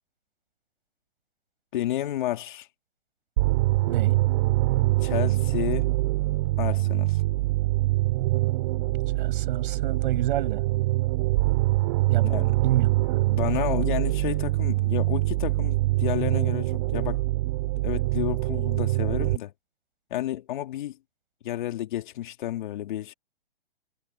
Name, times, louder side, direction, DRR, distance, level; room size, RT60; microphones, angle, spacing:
voice 1, 1.7-2.7 5.0-5.9 6.6-7.2 12.2-12.5 13.3-17.2 17.8-19.5 20.1-21.0 21.4-23.1, left 13 dB, 50° left, 2.8 m, -31 dB
sound 1, 3.4-19.4, right 19 dB, 40° right, 3.4 m, -24 dB
voice 2, 3.9-4.2 9.2-10.6 12.1-12.3 12.6-13.2, right 11 dB, 55° right, 5.3 m, -30 dB
hypercardioid pair, 155°, 31 cm